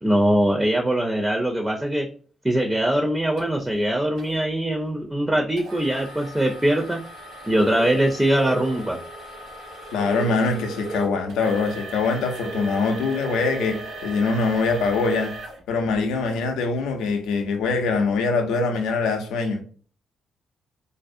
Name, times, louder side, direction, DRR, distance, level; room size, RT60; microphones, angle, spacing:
voice 1, 0.0-2.1 2.4-7.0 7.5-9.0, right 1 dB, 15° right, 0.4 m, -22 dB
sound 1, 3.1-3.9 4.3-4.7 5.2-5.5 5.8-5.9 6.1-6.3 6.8-14.6, right 3 dB, 55° right, 0.6 m, -38 dB
sound 2, 3.4-3.5 4.2-4.4 5.6-16.4 17.0-17.1 17.7-17.8, right 1 dB, 75° right, 1.0 m, -39 dB
voice 2, 9.9-15.3 15.7-19.6, left 4 dB, 85° left, 0.5 m, -23 dB
2.5 x 2.0 x 2.5 m
supercardioid pair, 60°, 0 cm